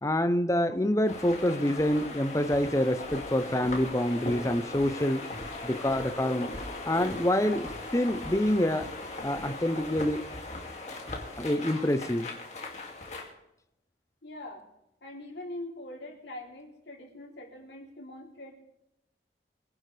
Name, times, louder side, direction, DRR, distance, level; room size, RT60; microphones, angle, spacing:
voice 1, 0.0-5.3 5.6-6.5 6.8-7.7 7.9-8.9 9.2-10.2 11.4-12.3, left 1 dB, 15° left, 11 dB, 0.7 m, -26 dB
sound 1, 1.1-13.3, left 2 dB, 40° left, 2.4 m, -39 dB
voice 2, 1.2-1.5 4.1-4.3 7.5-7.7 8.8-8.9 10.1-10.2 14.2-14.7 15.0-18.5, left 1 dB, 80° left, 0 dB, 3.3 m, -43 dB
22.5 x 11.0 x 3.4 m, 0.84 s
head